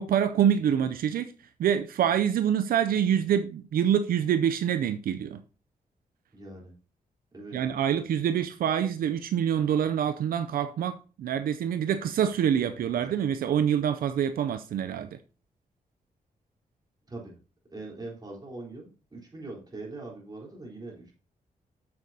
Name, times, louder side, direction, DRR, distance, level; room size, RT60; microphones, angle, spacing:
voice 1, 0.0-1.3 1.6-5.4 7.5-15.2, right 9 dB, 85° right, 0.5 m, -26 dB
voice 2, 6.3-6.7 7.3-7.6 17.1-17.4 17.7-21.1, right 2 dB, 30° right, 3.8 m, -42 dB
7.7 x 7.3 x 2.8 m
cardioid pair, 90°, 15 cm